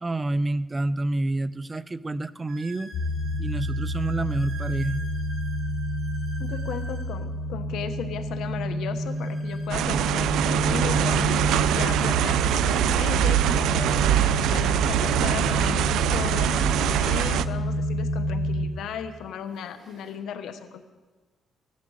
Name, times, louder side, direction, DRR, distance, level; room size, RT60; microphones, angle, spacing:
voice 1, 0.0-2.9 3.4-5.0, right 2 dB, 25° right, 15 dB, 0.6 m, -28 dB
sound 1, 1.5-1.6 2.5-7.1 9.0-10.7 11.7-11.8 12.0-12.2 13.0-13.1 15.3-15.4 17.5-17.6 18.3-18.7 19.2-20.1, right 3 dB, 45° right, 6.0 m, -46 dB
sound 2, 2.9-18.7, equal, 60° left, 2.0 m, -29 dB
voice 2, 6.4-20.8, left 8 dB, 80° left, 9 dB, 1.1 m, -36 dB
sound 3, 9.7-17.5, right 11 dB, 85° right, 0.4 m, -23 dB
15.0 x 11.5 x 6.4 m, 1.3 s
cardioid pair, 90°, 0 cm